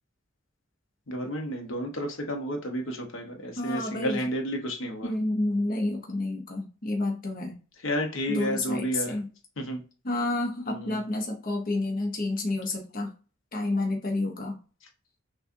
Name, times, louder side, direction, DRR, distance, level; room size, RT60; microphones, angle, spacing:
voice 1, 1.1-5.1 7.8-9.2 9.6-9.8 10.7-11.0, equal, 75° left, 3 dB, 1.0 m, -31 dB
voice 2, 3.6-4.2 5.0-7.6 8.3-9.3 10.0-13.1 13.5-14.6, left 2 dB, 45° left, 1 dB, 0.9 m, -29 dB
5.9 x 2.5 x 2.6 m, 0.36 s
head